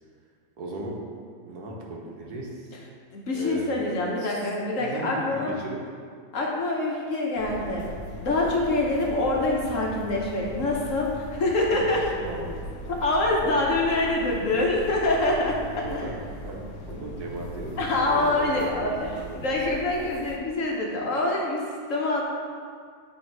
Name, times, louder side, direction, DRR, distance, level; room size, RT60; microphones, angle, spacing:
voice 1, 0.6-1.0 1.5-2.7 3.3-3.7 4.2-4.5 4.8-5.8 11.7-11.9 12.2-12.9 15.8-19.8, right 2 dB, 75° right, -2 dB, 1.5 m, -37 dB
voice 2, 3.1-5.6 6.3-7.9 8.2-12.0 12.9-16.1 17.8-22.2, left 2 dB, 60° left, -2 dB, 1.2 m, -25 dB
sound 1, 7.4-20.4, left 1 dB, 80° left, 1.2 m, -40 dB
8.4 x 3.5 x 4.6 m, 2.1 s
omnidirectional pair, 1.7 m